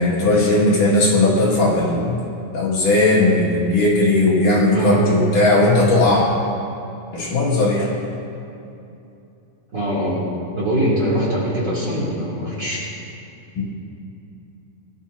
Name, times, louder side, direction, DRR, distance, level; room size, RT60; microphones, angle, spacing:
voice 1, 0.0-2.2 2.5-6.3 7.1-8.0 13.5-13.6, left 2 dB, 60° left, -6 dB, 3.4 m, -17 dB
voice 2, 4.7-5.1 9.7-10.2 10.5-12.9, right 1 dB, 30° right, -8 dB, 3.4 m, -22 dB
22.5 x 12.5 x 2.8 m, 2.7 s
omnidirectional pair, 4.4 m